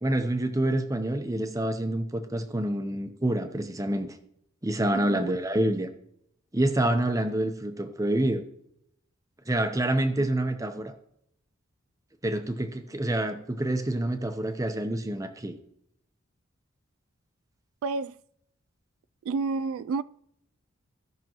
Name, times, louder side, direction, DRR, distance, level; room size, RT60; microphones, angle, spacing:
voice 1, 0.0-4.2 4.6-5.9 6.5-8.4 9.5-10.9 12.2-15.6, right 1 dB, 15° right, 0.8 m, -27 dB
voice 2, 4.9-5.3 10.2-10.3 17.8-18.2 19.2-20.0, right 4 dB, 85° right, 0.3 m, -30 dB
16.0 x 6.0 x 3.0 m
head